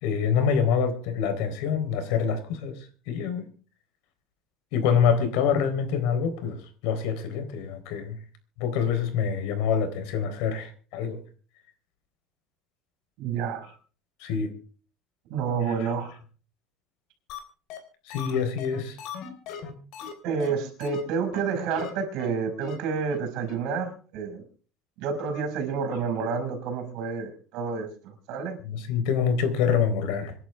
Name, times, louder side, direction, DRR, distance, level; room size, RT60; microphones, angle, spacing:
voice 1, 0.0-3.4 4.7-8.2 8.6-11.2 14.2-14.5 18.1-19.0 28.6-30.3, left 7 dB, 80° left, 8 dB, 3.9 m, -26 dB
voice 2, 13.2-13.7 15.3-16.2 20.2-24.4 25.0-28.6, right 5 dB, 65° right, 6 dB, 5.8 m, -29 dB
sound 1, 17.3-17.4 17.7-17.8 18.1-20.1 20.4-20.5 20.8-21.0 21.3-21.4 21.7-21.9 22.2-22.3 22.6-22.8 23.1-23.2 23.5-23.6, left 7 dB, 55° left, 3.8 m, -38 dB
27.5 x 11.0 x 3.5 m, 0.39 s
cardioid pair, 160°, 0 cm